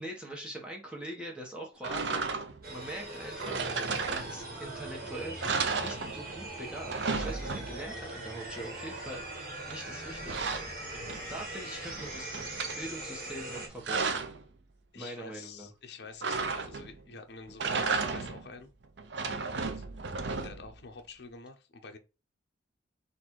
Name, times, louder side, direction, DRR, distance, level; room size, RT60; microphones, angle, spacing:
voice 1, 0.0-3.7 4.0-9.2 9.7-10.5 11.3-12.3 12.7-14.2 14.9-15.7, right 1 dB, 5° right, 1.1 m, -43 dB
sound 1, 1.8-2.7 3.4-4.7 5.0-5.1 5.4-6.5 6.7-8.0 9.7-11.5 11.9-12.8 13.5-14.4 16.2-17.0 17.5-18.5 19.0-20.8, right 4 dB, 75° right, 0.5 m, -34 dB
sound 2, 2.6-13.7, right 2 dB, 50° right, 1.4 m, -41 dB
voice 2, 14.9-18.7 19.5-19.8 20.4-22.0, left 4 dB, 65° left, 0.6 m, -48 dB
4.0 x 2.6 x 4.4 m
head